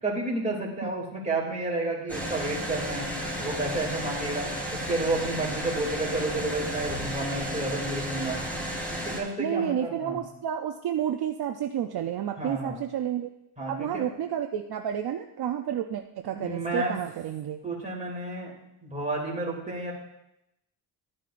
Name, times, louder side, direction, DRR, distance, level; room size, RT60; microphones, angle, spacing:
voice 1, 0.0-3.1 3.4-8.4 8.9-10.2 12.4-12.8 13.6-14.0 16.3-16.9 17.6-18.5 18.8-19.9, right 2 dB, 15° right, -3 dB, 2.6 m, -31 dB
sound 1, 2.1-9.2, equal, 5° left, 3.1 m, -33 dB
voice 2, 9.4-13.3 13.7-17.6, right 9 dB, 55° right, 5 dB, 0.6 m, -30 dB
12.0 x 9.8 x 2.5 m, 0.85 s
wide cardioid pair, 125°, 45 cm